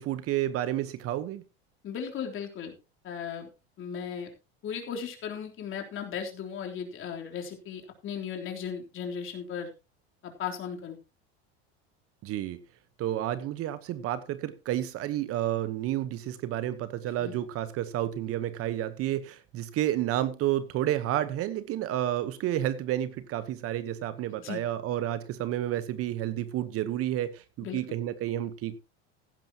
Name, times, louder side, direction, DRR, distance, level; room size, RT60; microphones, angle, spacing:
voice 1, 0.0-1.4 12.2-12.6 13.0-28.8, right 12 dB, 45° right, 1.1 m, -30 dB
voice 2, 1.8-2.7 3.0-3.5 3.8-4.3 4.6-9.7 10.2-11.0 17.2-17.4 24.4-24.7 27.6-27.8, left 7 dB, 40° left, 3.6 m, -36 dB
15.5 x 11.5 x 2.9 m
supercardioid pair, 125°, 32 cm